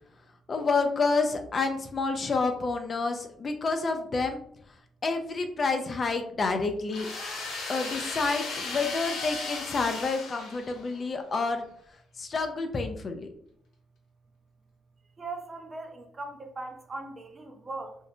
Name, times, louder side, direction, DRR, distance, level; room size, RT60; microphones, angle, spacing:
voice 1, 0.5-4.4 5.0-7.1 7.7-11.6 12.2-13.3, left 4 dB, 40° left, 6 dB, 0.4 m, -29 dB
sound 1, 6.9-11.0, left 3 dB, 80° left, 0.7 m, -36 dB
voice 2, 15.2-18.1, right 3 dB, 30° right, 5 dB, 0.4 m, -39 dB
2.7 x 2.0 x 2.6 m, 0.65 s
cardioid pair, 90°, 0 cm